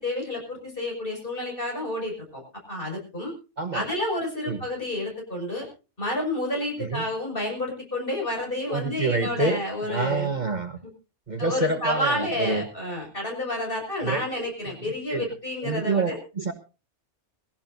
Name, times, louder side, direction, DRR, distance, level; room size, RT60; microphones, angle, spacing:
voice 1, 0.0-2.4 2.7-3.3 3.7-5.7 6.0-10.3 11.4-16.2, left 1 dB, 45° left, 0 dB, 6.5 m, -30 dB
voice 2, 3.6-3.9 4.4-4.6 6.8-7.0 8.7-10.8 11.3-12.7 14.0-14.2 15.1-15.3 15.6-16.5, right 3 dB, 40° right, 7 dB, 1.3 m, -27 dB
21.0 x 16.5 x 2.7 m, 0.32 s
omnidirectional pair, 1.2 m